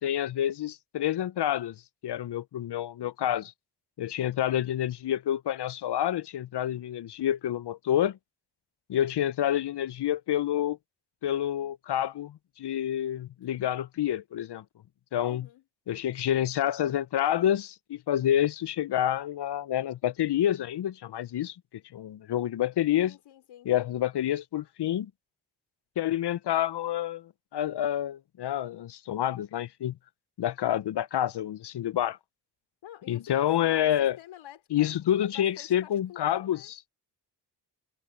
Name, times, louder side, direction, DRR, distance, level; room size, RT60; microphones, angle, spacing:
voice 1, 0.0-1.8 2.0-3.5 4.0-8.2 8.9-10.8 11.2-14.6 15.1-15.5 15.9-21.6 21.9-23.1 23.7-25.1 26.0-30.0 30.4-32.2 33.1-34.2 34.7-36.7, left 11 dB, 60° left, 0.8 m, -28 dB
voice 2, 15.2-15.6 23.0-23.7 32.8-36.7, left 12 dB, 90° left, 5.2 m, -49 dB
supercardioid pair, 45°, 45 cm